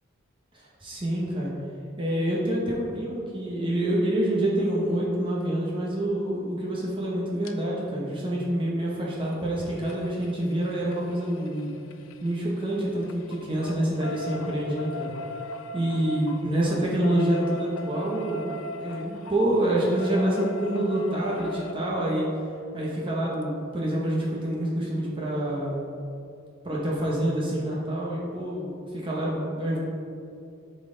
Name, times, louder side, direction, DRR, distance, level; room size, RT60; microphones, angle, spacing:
voice 1, 0.8-1.5 2.0-11.7 12.2-15.1 15.7-22.3 22.7-25.8 26.6-29.8, right 1 dB, 25° right, -5 dB, 1.1 m, -27 dB
sound 1, 7.4-7.5 9.2-12.7 13.0-21.7 23.4-23.5 23.8-23.9 24.2-24.3, left 2 dB, 75° left, 0.5 m, -39 dB
11.0 x 4.2 x 3.9 m, 2.5 s
head